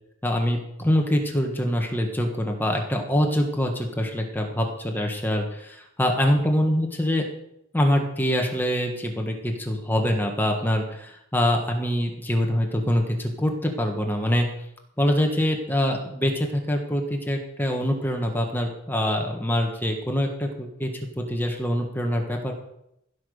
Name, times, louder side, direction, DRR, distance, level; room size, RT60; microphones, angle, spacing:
voice 1, 0.2-7.2 7.7-14.5 15.0-22.5, equal, 10° left, 2 dB, 1.6 m, -24 dB
16.0 x 6.0 x 6.7 m, 0.79 s
head